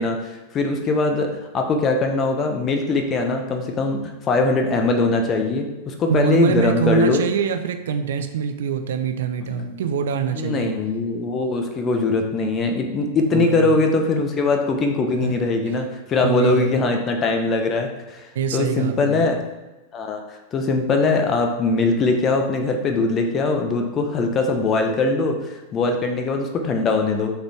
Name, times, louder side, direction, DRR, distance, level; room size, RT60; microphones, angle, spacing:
voice 1, 0.0-4.0 4.3-7.2 9.4-9.8 10.3-19.4 19.9-27.3, left 3 dB, 25° left, 3 dB, 1.0 m, -21 dB
voice 2, 6.1-10.7 13.3-13.7 15.2-15.3 16.2-16.7 18.3-19.3, right 7 dB, 60° right, 7 dB, 0.5 m, -24 dB
6.8 x 4.0 x 3.5 m, 1.1 s
figure-of-eight pair, 90°, 0 cm